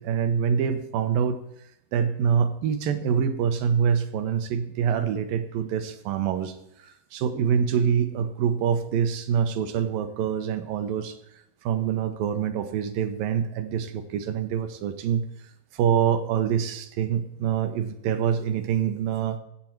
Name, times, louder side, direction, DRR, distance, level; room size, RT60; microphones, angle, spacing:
voice 1, 0.0-1.4 1.9-6.5 6.8-11.2 11.6-15.2 15.7-19.4, right 8 dB, 75° right, 8 dB, 2.4 m, -25 dB
14.5 x 7.5 x 4.5 m, 0.78 s
omnidirectional pair, 4.2 m